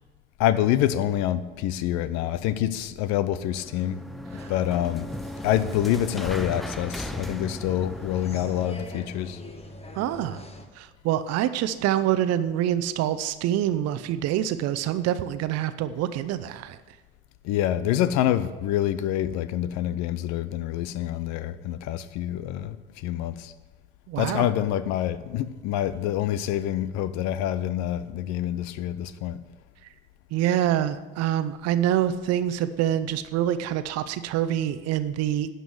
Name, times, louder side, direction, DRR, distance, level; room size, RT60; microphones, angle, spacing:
voice 1, 0.4-4.0 4.5-5.1 5.4-9.4 17.4-23.5 24.2-29.4, left 12 dB, 65° left, 0.7 m, -26 dB
sound 1, 3.4-8.9, equal, ahead, 0.6 m, -37 dB
sound 2, 4.3-10.7, left 1 dB, 20° left, 1.3 m, -42 dB
voice 2, 10.0-10.4 10.8-16.8 24.1-24.5 30.3-35.5, right 11 dB, 60° right, 0.7 m, -26 dB
11.0 x 5.3 x 7.8 m
hypercardioid pair, 65°, 29 cm